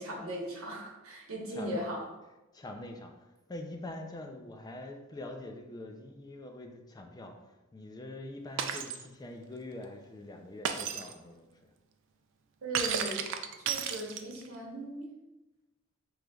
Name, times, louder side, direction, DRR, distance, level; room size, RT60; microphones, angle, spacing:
voice 1, 0.0-2.1 12.6-13.3 13.6-15.1, equal, 80° right, -2 dB, 1.1 m, -38 dB
voice 2, 1.5-1.8 2.2-3.1 3.5-7.3 7.7-11.5, left 2 dB, 20° left, 4 dB, 0.3 m, -44 dB
Shatter, 8.6-9.0 10.6-11.1 12.7-14.5, right 7 dB, 65° right, 0.3 m, -33 dB
5.0 x 3.1 x 2.3 m, 1.0 s
head